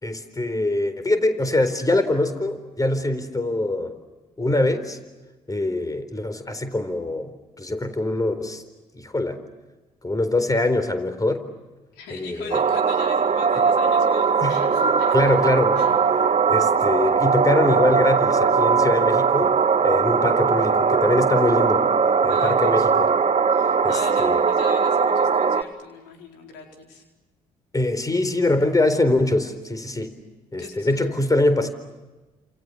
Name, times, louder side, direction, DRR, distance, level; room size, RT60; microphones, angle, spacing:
voice 1, 0.0-3.9 4.4-5.0 5.5-7.3 7.6-8.6 9.0-9.4 10.0-11.4 12.1-12.6 14.4-14.5 15.1-15.7 16.3-19.6 19.8-23.1 23.8-24.4 27.7-30.1 30.5-31.7, left 2 dB, 20° left, 10 dB, 4.1 m, -23 dB
voice 2, 11.9-15.4 15.8-15.9 22.3-23.0 23.5-27.0 30.6-31.2, left 4 dB, 75° left, 2 dB, 4.6 m, -42 dB
sound 1, 12.5-25.6, right 5 dB, 40° right, 1.5 m, -20 dB
30.0 x 28.0 x 6.9 m, 1.2 s
hypercardioid pair, 45°, 17 cm